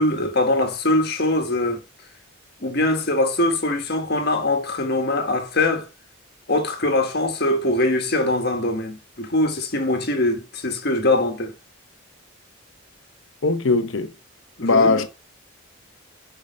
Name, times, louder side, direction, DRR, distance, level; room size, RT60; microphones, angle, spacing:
voice 1, 0.0-1.8 2.6-5.9 6.5-11.5 14.6-15.0, left 2 dB, 50° left, 1.5 m, -22 dB
voice 2, 13.4-14.1 14.6-15.1, left 3 dB, 70° left, 0.8 m, -19 dB
6.5 x 4.9 x 5.3 m
head